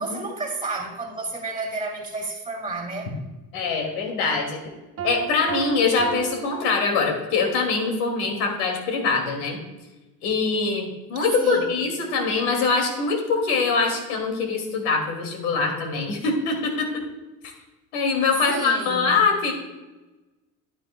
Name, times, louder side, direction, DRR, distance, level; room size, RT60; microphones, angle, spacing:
voice 1, 0.0-3.1 11.4-11.7 18.5-19.2, right 2 dB, 10° right, 2.3 m, -31 dB
voice 2, 3.5-4.6 5.0-9.6 10.2-17.0 17.9-19.5, left 4 dB, 70° left, 2.5 m, -23 dB
Piano, 5.0-7.5, right 10 dB, 30° right, 0.9 m, -34 dB
10.0 x 9.9 x 2.3 m
hypercardioid pair, 85°, 48 cm